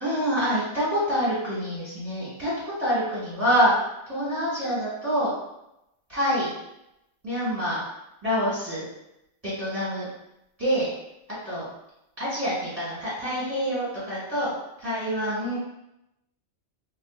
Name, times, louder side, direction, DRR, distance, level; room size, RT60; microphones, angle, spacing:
voice 1, 0.0-3.7 4.1-5.3 6.1-6.5 7.2-7.8 8.2-8.9 9.4-10.1 10.6-10.9 11.4-11.6 12.2-14.5 14.8-15.6, equal, 30° right, -10 dB, 1.3 m, -26 dB
4.4 x 2.3 x 2.3 m, 0.86 s
omnidirectional pair, 1.2 m